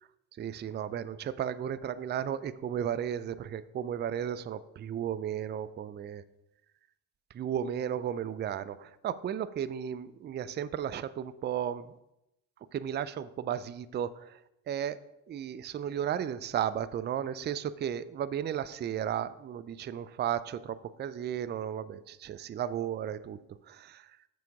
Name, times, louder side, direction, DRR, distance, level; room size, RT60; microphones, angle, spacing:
voice 1, 0.4-6.2 7.3-11.9 12.7-14.4 14.7-15.0 15.3-23.4 23.7-24.1, right 9 dB, 25° right, 15 dB, 0.3 m, -34 dB
6.8 x 6.1 x 4.7 m, 0.87 s
hypercardioid pair, 60°, 50 cm